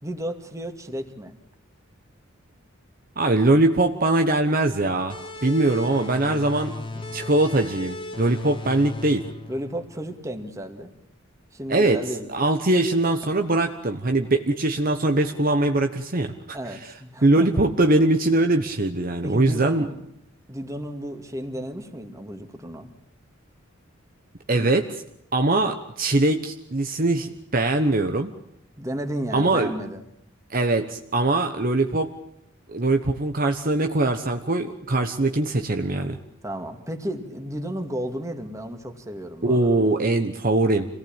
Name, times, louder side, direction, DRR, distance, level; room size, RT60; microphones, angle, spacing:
voice 1, 0.0-1.3 6.5-7.0 9.5-10.9 11.5-12.3 16.5-17.7 19.2-20.0 20.5-22.9 28.8-30.0 36.4-39.8, right 1 dB, 15° right, 5 dB, 2.3 m, -33 dB
voice 2, 3.2-6.7 7.1-9.2 11.7-12.0 12.3-16.9 17.2-19.9 24.5-24.8 25.3-28.3 29.3-29.7 30.5-32.1 32.7-36.2 39.4-40.9, right 2 dB, 45° right, 6 dB, 1.2 m, -22 dB
sound 1, 5.1-10.4, left 2 dB, 25° left, 2.7 m, -37 dB
27.0 x 18.0 x 9.0 m, 0.77 s
head